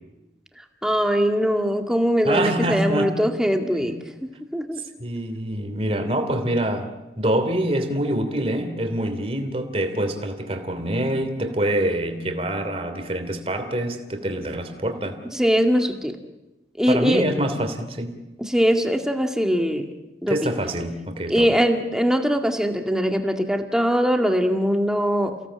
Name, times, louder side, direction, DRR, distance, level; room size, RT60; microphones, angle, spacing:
voice 1, 0.8-4.0 4.5-4.8 15.3-16.2 16.8-17.2 18.4-19.9 20.2-20.4 21.3-25.3, equal, 5° right, 4 dB, 2.0 m, -21 dB
voice 2, 2.2-3.2 3.8-3.9 5.0-6.9 7.2-15.2 16.9-18.1 20.3-21.6, right 1 dB, 35° right, 6 dB, 3.0 m, -25 dB
29.5 x 17.5 x 8.7 m, 1.0 s
head